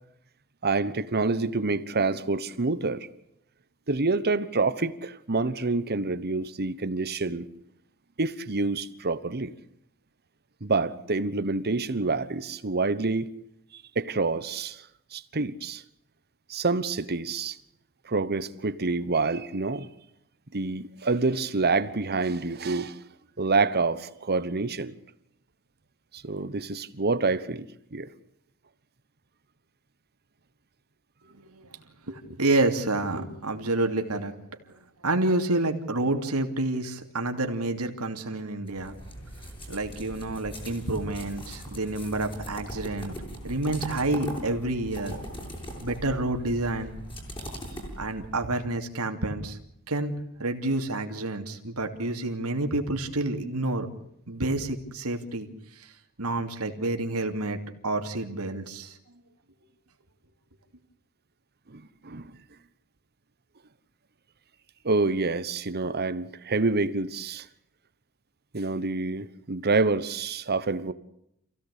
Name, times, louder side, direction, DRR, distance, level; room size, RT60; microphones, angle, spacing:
voice 1, 0.6-3.1 3.9-7.5 8.2-9.5 10.6-13.3 13.7-15.8 16.5-17.6 18.0-19.9 20.5-23.0 23.4-25.0 26.1-28.1 61.7-62.3 64.8-67.5 68.5-70.9, right 3 dB, 45° right, 1.1 m, -27 dB
voice 2, 31.3-31.8 32.1-39.0 39.7-43.1 43.4-45.2 45.8-47.0 48.0-49.6 49.9-53.9 54.3-55.9 56.2-57.6 57.8-59.0, right 2 dB, 80° right, 2.8 m, -29 dB
sound 1, 38.7-48.4, equal, 25° left, 7.6 m, -40 dB
28.0 x 16.5 x 8.4 m
head